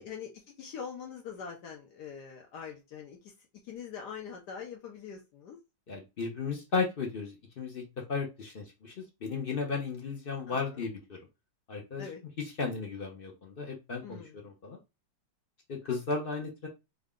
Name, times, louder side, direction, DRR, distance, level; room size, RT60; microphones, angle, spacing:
voice 1, 0.0-3.3 3.6-5.6 10.5-10.9 12.0-12.2 14.0-14.5, left 7 dB, 75° left, 1 dB, 1.2 m, -43 dB
voice 2, 5.9-7.8 8.1-11.2 11.7-12.0 12.4-14.8 15.7-16.7, left 4 dB, 55° left, 1 dB, 0.6 m, -35 dB
3.6 x 2.2 x 3.6 m, 0.25 s
omnidirectional pair, 2.0 m